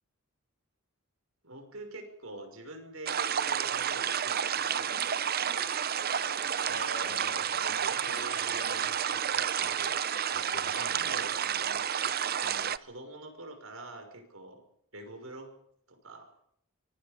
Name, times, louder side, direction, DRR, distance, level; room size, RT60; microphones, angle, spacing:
voice 1, 1.4-5.7 7.0-7.4 10.7-11.8 12.4-14.6 14.9-15.5 15.9-16.3, right 2 dB, 70° right, 6 dB, 5.9 m, -46 dB
sound 1, 3.1-12.8, right 8 dB, 45° right, 0.8 m, -30 dB
voice 2, 6.7-10.0 10.3-11.2, left 2 dB, 75° left, 3 dB, 4.6 m, -46 dB
25.0 x 24.0 x 5.3 m, 0.69 s
head